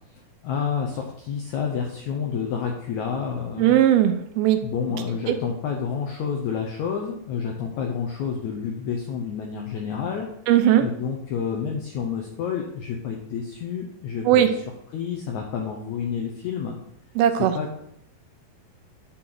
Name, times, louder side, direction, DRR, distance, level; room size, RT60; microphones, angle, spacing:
voice 1, 0.4-3.8 4.6-10.3 10.8-14.6 14.9-16.8 17.4-17.8, left 6 dB, 80° left, 2 dB, 1.7 m, -29 dB
voice 2, 3.6-4.6 5.3-5.4 10.5-10.8 14.3-14.5 17.2-17.5, right 11 dB, 80° right, 9 dB, 2.3 m, -18 dB
10.0 x 6.2 x 3.9 m, 0.74 s
omnidirectional pair, 4.5 m